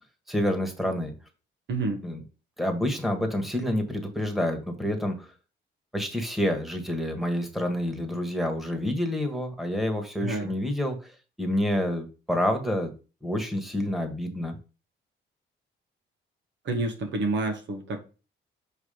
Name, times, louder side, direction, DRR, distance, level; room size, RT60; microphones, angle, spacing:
voice 1, 0.3-1.1 2.0-2.2 2.6-5.3 5.9-12.9 13.2-14.5, left 1 dB, ahead, 1.6 m, -28 dB
voice 2, 1.7-2.0 10.2-10.5 16.6-18.0, right 2 dB, 65° right, 1.4 m, -28 dB
7.4 x 3.1 x 5.0 m
cardioid pair, 90°, 20 cm